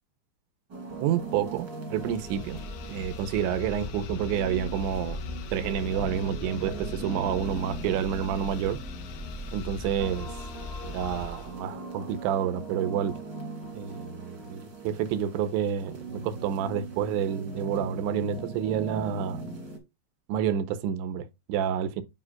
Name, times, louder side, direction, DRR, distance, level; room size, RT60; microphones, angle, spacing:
sound 1, 0.7-19.8, right 3 dB, 40° right, 1.5 m, -40 dB
voice 1, 1.0-2.6 2.9-5.2 5.5-8.8 9.5-10.3 10.8-13.2 13.7-19.4 20.3-22.0, right 9 dB, 85° right, 2.9 m, -29 dB
sound 2, 1.9-11.6, left 4 dB, 85° left, 3.5 m, -39 dB
9.9 x 5.2 x 2.4 m
omnidirectional pair, 5.5 m